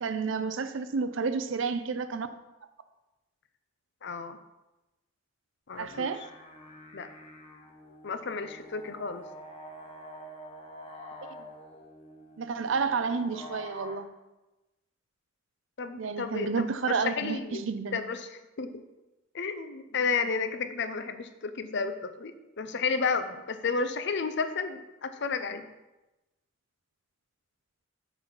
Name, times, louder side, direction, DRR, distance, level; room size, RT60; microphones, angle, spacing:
voice 1, 0.0-2.3 5.8-6.2 11.2-11.4 12.4-14.1 16.0-18.0, right 5 dB, 65° right, 11 dB, 0.5 m, -30 dB
voice 2, 4.0-4.4 5.7-6.2 6.9-7.1 8.0-9.2 15.8-16.5 16.9-17.7 17.9-18.8 19.3-25.7, left 5 dB, 55° left, 10 dB, 0.6 m, -32 dB
sound 1, 5.7-14.0, left 1 dB, 30° left, 1.0 m, -47 dB
7.8 x 4.0 x 6.0 m, 1.0 s
head